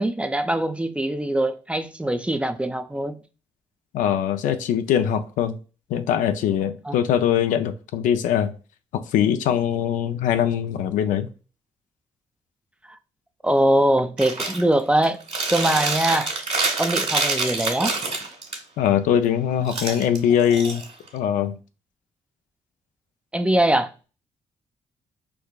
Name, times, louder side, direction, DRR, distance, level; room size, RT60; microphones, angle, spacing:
voice 1, 0.0-3.2 6.8-7.3 13.4-15.2 15.5-16.3 16.8-17.9 23.3-23.9, right 1 dB, 10° right, 0.4 m, -22 dB
voice 2, 3.9-5.6 5.9-8.5 8.9-11.3 18.8-20.8 21.1-21.6, left 9 dB, 80° left, 0.4 m, -22 dB
Chewing mastication, 14.2-14.6 15.0-18.6 19.6-21.2, right 3 dB, 55° right, 1.6 m, -26 dB
4.6 x 2.5 x 2.2 m
supercardioid pair, 55°, 13 cm